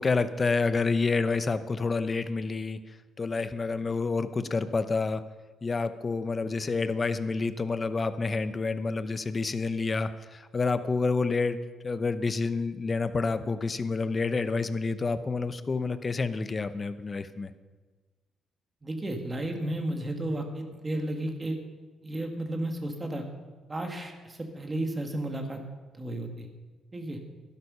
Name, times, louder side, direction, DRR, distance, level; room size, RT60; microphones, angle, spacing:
voice 1, 0.0-5.2 5.6-11.6 11.8-17.5, left 4 dB, 30° left, 12 dB, 0.8 m, -28 dB
voice 2, 18.8-21.6 22.0-23.3 23.7-25.6 25.9-26.5 26.9-27.2, right 1 dB, 25° right, 4 dB, 1.9 m, -33 dB
12.0 x 11.0 x 5.6 m, 1.3 s
cardioid pair, 90°, 0 cm